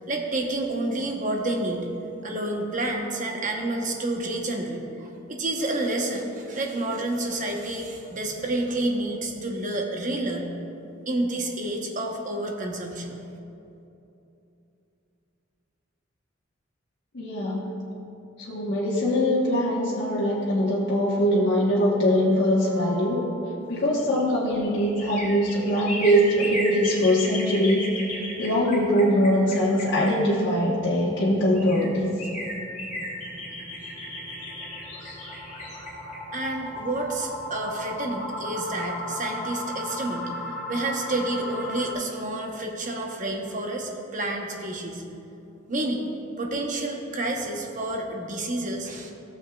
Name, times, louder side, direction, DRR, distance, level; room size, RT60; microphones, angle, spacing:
voice 1, 0.1-1.9 2.2-10.5 11.1-13.3 36.3-40.3 40.7-45.0 45.7-46.1 46.4-49.1, right 2 dB, 40° right, 1 dB, 0.9 m, -29 dB
voice 2, 17.1-17.8 18.4-23.3 23.7-27.9 28.4-32.1, equal, 60° left, -7 dB, 1.2 m, -22 dB
sound 1, 22.3-23.8 24.2-24.3 24.7-24.8 25.2-25.3 30.1-41.9, left 1 dB, 10° left, 1.2 m, -38 dB
sound 2, 23.9-30.7 31.2-31.3 31.5-37.3 37.7-37.8, left 1 dB, 40° left, 1.9 m, -36 dB
15.0 x 7.3 x 2.3 m, 2.8 s
head